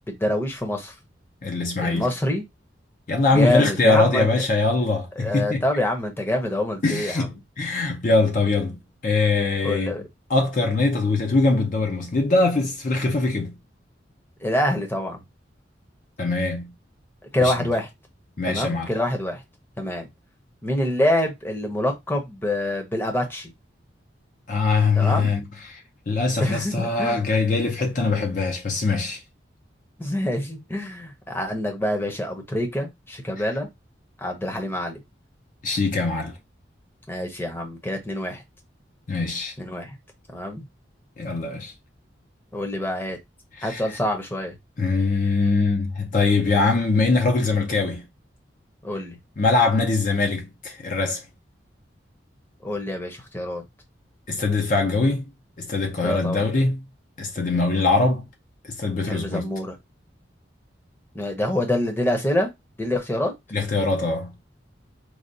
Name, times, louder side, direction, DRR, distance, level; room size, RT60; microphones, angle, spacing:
voice 1, 0.1-0.9 1.8-2.4 3.3-4.3 5.2-7.3 9.6-10.0 14.4-15.2 17.3-17.9 18.5-19.4 19.8-20.1 20.6-23.5 25.0-25.3 26.4-27.2 30.0-33.7 34.2-35.0 37.1-38.4 39.6-39.9 40.3-40.6 42.5-43.2 43.6-44.6 48.8-49.2 52.6-53.6 56.0-56.4 59.1-59.8 61.1-62.5 62.8-63.3, left 1 dB, 10° left, 0.7 m, -26 dB
voice 2, 1.4-2.1 3.1-5.6 6.8-10.0 10.3-13.5 16.2-16.7 17.4-17.5 18.4-18.9 24.5-29.2 35.6-36.4 39.1-39.5 41.2-41.7 43.6-44.0 44.8-48.0 49.4-51.2 54.3-55.3 55.6-56.8 57.2-58.2 58.7-59.5 63.5-64.3, left 3 dB, 45° left, 0.5 m, -22 dB
4.7 x 2.3 x 2.6 m
head